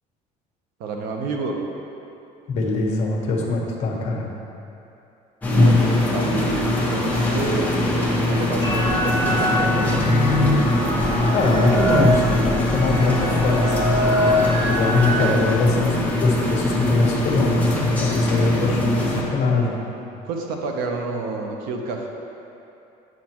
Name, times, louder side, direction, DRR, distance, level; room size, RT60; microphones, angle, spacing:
voice 1, 0.8-1.6 5.5-7.8 8.2-10.1 15.1-15.4 20.2-22.1, right 3 dB, 90° right, 2 dB, 0.9 m, -29 dB
voice 2, 2.5-4.3 11.3-19.8, left 3 dB, 50° left, -1 dB, 1.1 m, -22 dB
sound 1, 5.4-19.2, left 1 dB, 10° left, 1.0 m, -22 dB
sound 2, 8.6-15.2, equal, 20° right, 1.7 m, -23 dB
7.5 x 7.4 x 3.0 m, 2.8 s
cardioid pair, 150°, 15 cm